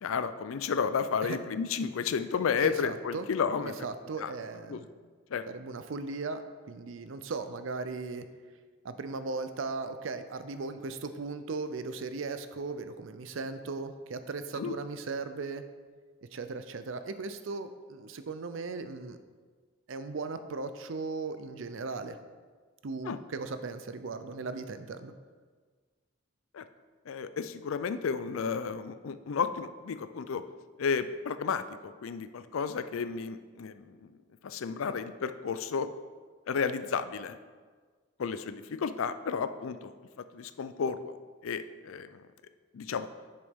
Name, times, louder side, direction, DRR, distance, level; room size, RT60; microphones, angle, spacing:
voice 1, 0.0-3.7 4.2-4.3 4.7-4.8 5.3-5.4 14.5-14.7 23.0-23.2 26.5-26.6 27.1-30.4 30.8-34.0 34.4-35.9 36.5-37.4 38.2-39.9 40.3-41.2 41.4-42.2 42.7-43.1, left 6 dB, 80° left, 12 dB, 0.4 m, -32 dB
voice 2, 2.6-3.3 3.6-4.9 5.5-6.4 6.7-8.2 8.8-15.6 16.3-19.2 19.9-22.2 22.8-25.1, right 4 dB, 75° right, 10 dB, 0.5 m, -37 dB
7.9 x 6.8 x 3.6 m, 1.5 s
head